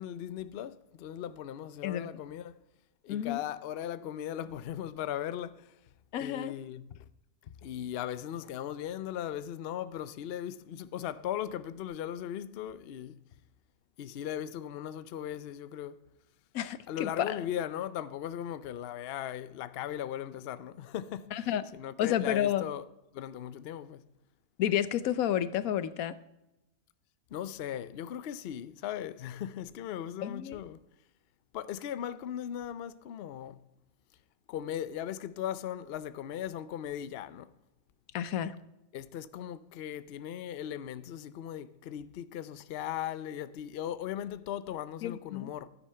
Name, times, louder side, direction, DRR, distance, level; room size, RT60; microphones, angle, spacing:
voice 1, 0.0-2.6 3.0-5.7 6.2-7.0 7.4-13.2 14.0-16.0 16.9-22.8 23.1-24.1 27.3-30.8 31.5-33.6 34.5-37.5 38.9-45.7, left 10 dB, 60° left, 0.7 m, -38 dB
voice 2, 3.1-3.4 6.1-6.5 16.5-17.4 21.3-21.6 22.0-22.6 24.6-26.1 30.2-30.6 38.1-38.5 45.0-45.5, left 10 dB, 85° left, 1.2 m, -30 dB
13.5 x 10.0 x 5.6 m
omnidirectional pair, 1.5 m